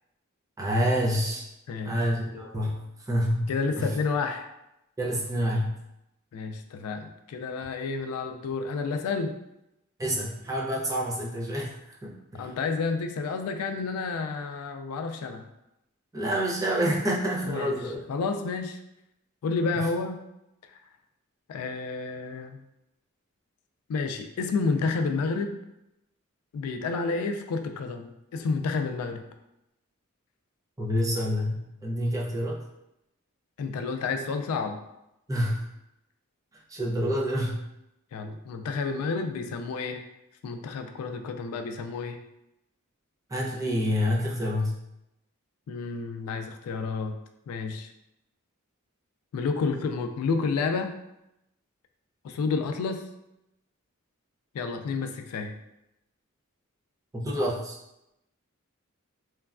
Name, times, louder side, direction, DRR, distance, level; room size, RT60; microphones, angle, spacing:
voice 1, 0.6-1.4 1.8-3.9 5.0-5.7 10.0-12.5 16.1-18.0 30.8-32.6 35.3-35.6 36.7-37.6 43.3-44.8 57.1-57.8, equal, 15° right, -3 dB, 0.4 m, -28 dB
voice 2, 1.7-2.0 3.5-4.5 6.3-9.3 12.4-15.5 17.5-17.8 18.1-18.8 19.4-20.2 21.5-22.6 23.9-25.6 26.5-29.3 33.6-34.8 38.1-40.0 40.4-42.2 45.7-47.2 47.5-47.9 49.3-50.9 52.2-53.0 54.5-55.6, left 4 dB, 80° left, 6 dB, 0.3 m, -30 dB
3.0 x 2.2 x 2.4 m, 0.87 s
head